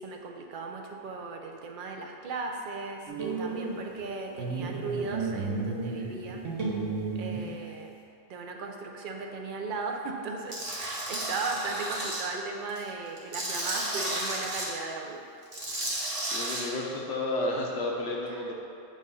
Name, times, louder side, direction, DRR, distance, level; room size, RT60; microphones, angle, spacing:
voice 1, 0.0-6.4 7.2-8.0 8.3-15.2, right 3 dB, 55° right, 2 dB, 0.6 m, -37 dB
sound 1, 3.1-4.1 4.4-7.9, right 4 dB, 85° right, 1.2 m, -33 dB
Tools, 10.5-12.2 12.7-14.7 15.4-16.6, right 1 dB, 30° right, 0.9 m, -33 dB
voice 2, 16.3-18.5, left 2 dB, 70° left, -2 dB, 1.1 m, -31 dB
7.1 x 2.5 x 5.4 m, 2.4 s
omnidirectional pair, 1.2 m